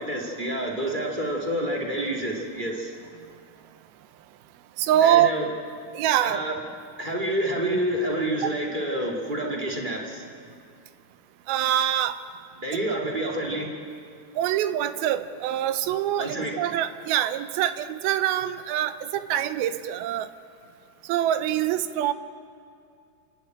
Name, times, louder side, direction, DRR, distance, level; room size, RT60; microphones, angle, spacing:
voice 1, 0.0-2.9 5.0-5.4 6.2-6.5 7.0-10.3 12.6-13.7 16.2-16.5, right 1 dB, 30° right, -1 dB, 0.9 m, -28 dB
voice 2, 4.8-5.4 5.9-6.4 11.5-12.2 12.9-13.0 14.4-20.3 21.0-22.1, right 11 dB, 80° right, 11 dB, 2.4 m, -24 dB
28.0 x 12.0 x 9.1 m, 2.4 s
omnidirectional pair, 4.7 m